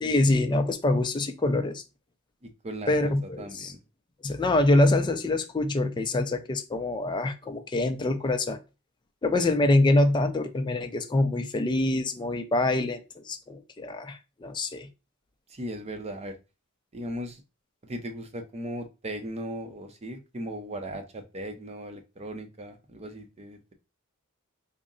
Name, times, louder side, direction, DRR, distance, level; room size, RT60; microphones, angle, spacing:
voice 1, 0.0-1.8 2.9-3.7 4.2-8.6 9.2-14.9, left 2 dB, 20° left, 0.4 m, -25 dB
voice 2, 2.6-3.8 15.5-16.3 16.9-17.4 17.8-23.7, right 1 dB, 30° right, 0.6 m, -37 dB
3.6 x 2.1 x 3.8 m
head